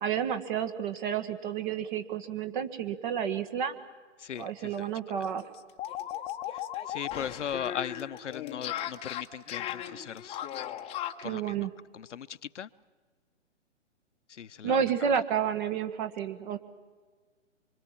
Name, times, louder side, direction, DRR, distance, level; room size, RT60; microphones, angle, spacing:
voice 1, 0.0-3.7 4.4-5.4 11.2-11.7 14.6-16.6, right 8 dB, 40° right, 10 dB, 1.6 m, -30 dB
voice 2, 4.2-4.9 5.2-5.3 6.5-10.4 11.2-11.7 11.9-12.7 14.3-15.2, left 8 dB, 70° left, 15 dB, 0.9 m, -39 dB
sound 1, 4.3-4.4 4.7-4.8 5.2-11.3, left 11 dB, 15° left, 0.9 m, -37 dB
25.5 x 25.0 x 7.3 m, 1.5 s
figure-of-eight pair, 130°, 37 cm